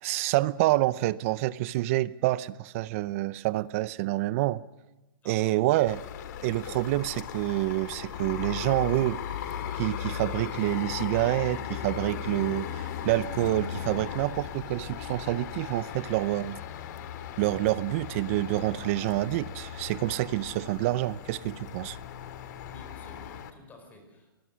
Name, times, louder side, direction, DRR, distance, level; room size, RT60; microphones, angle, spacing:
voice 1, 0.0-4.6 5.2-6.0 6.4-9.2 9.7-16.6 17.4-22.0, right 17 dB, 35° right, 0.6 m, -27 dB
voice 2, 5.2-5.7 22.6-24.3, left 2 dB, 15° left, 4.5 m, -52 dB
sound 1, 5.9-23.5, left 9 dB, 50° left, 2.2 m, -37 dB
24.0 x 21.0 x 6.4 m
hypercardioid pair, 145°, 12 cm